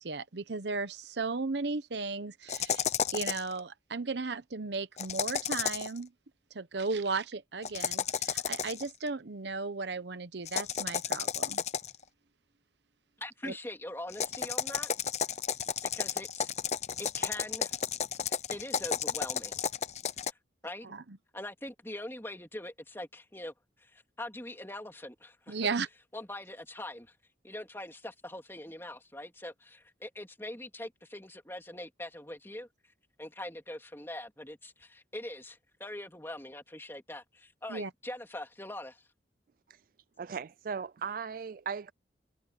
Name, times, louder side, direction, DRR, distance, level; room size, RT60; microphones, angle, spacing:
voice 1, 0.0-2.8 3.1-6.1 6.5-11.6 13.4-13.5 20.9-21.0 25.5-25.9 37.7-37.9, right 4 dB, 70° right, 0.9 m, -35 dB
sound 1, 2.5-3.5 5.0-6.0 7.6-8.9 10.5-12.0 14.1-20.3, left 7 dB, 35° left, 0.7 m, -32 dB
voice 2, 13.2-14.9 15.9-16.5 17.0-17.8 18.3-19.6 20.6-20.9 21.3-25.6 26.1-27.1 27.4-32.7 33.2-39.0, left 1 dB, 15° left, 3.4 m, -43 dB
voice 3, 40.2-41.9, right 6 dB, 50° right, 0.3 m, -37 dB
head